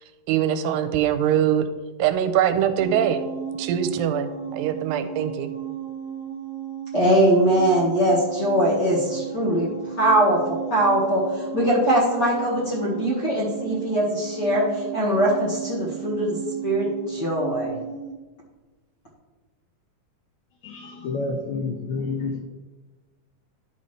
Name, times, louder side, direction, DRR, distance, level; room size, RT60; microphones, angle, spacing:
voice 1, 0.3-1.6 2.0-3.2 3.6-5.5, right 9 dB, 90° right, 9 dB, 2.3 m, -22 dB
sound 1, 2.8-18.2, right 8 dB, 75° right, 1.9 m, -34 dB
voice 2, 6.9-9.7 10.0-16.4 16.6-17.8, right 1 dB, 45° left, -5 dB, 1.5 m, -21 dB
voice 3, 20.6-22.4, left 3 dB, 80° left, 2 dB, 1.7 m, -29 dB
11.0 x 5.6 x 3.2 m, 1.2 s
omnidirectional pair, 4.0 m